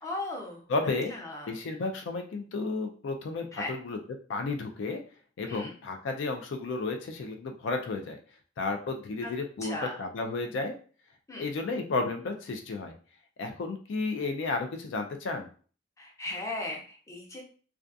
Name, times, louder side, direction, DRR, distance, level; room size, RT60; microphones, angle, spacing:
voice 1, 0.0-0.6 1.1-1.5 3.5-3.7 5.4-5.7 9.2-9.3 9.6-9.9 11.3-11.5 16.0-17.4, left 2 dB, 15° left, -1 dB, 0.6 m, -37 dB
voice 2, 0.7-1.1 1.5-4.0 4.3-5.0 5.4-8.2 8.6-10.7 11.4-13.0 13.4-15.5, left 3 dB, 70° left, 4 dB, 0.4 m, -32 dB
2.3 x 2.3 x 2.5 m, 0.41 s
head